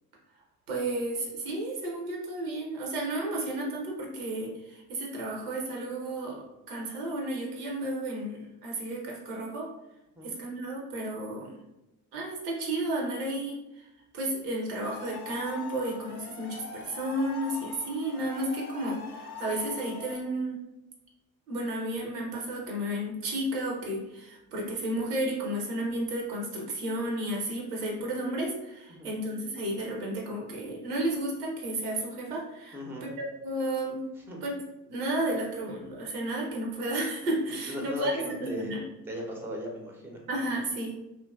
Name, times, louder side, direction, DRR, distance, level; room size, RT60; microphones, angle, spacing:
voice 1, 0.7-9.7 10.2-11.6 12.1-13.9 14.1-20.6 21.5-34.0 34.4-34.6 34.9-38.8 40.3-40.9, right 1 dB, 75° right, -1 dB, 0.7 m, -32 dB
sound 1, 14.8-20.2, left 6 dB, 65° left, 0.5 m, -43 dB
voice 2, 32.7-33.1 34.3-34.4 37.5-38.8 39.1-40.2, left 1 dB, 5° right, 0 dB, 0.5 m, -37 dB
2.7 x 2.4 x 2.3 m, 0.93 s
figure-of-eight pair, 45°, 47 cm